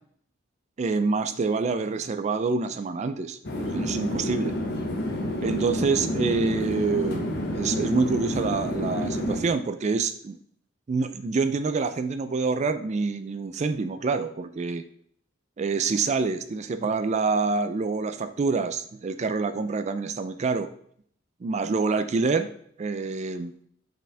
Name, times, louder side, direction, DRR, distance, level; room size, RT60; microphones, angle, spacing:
voice 1, 0.8-4.6 5.4-10.4 10.9-14.8 15.6-20.7 21.4-22.5 22.8-23.5, right 4 dB, 35° right, 11 dB, 0.4 m, -26 dB
sound 1, 3.4-9.4, equal, 60° left, 1.2 m, -29 dB
5.6 x 5.0 x 3.4 m, 0.62 s
head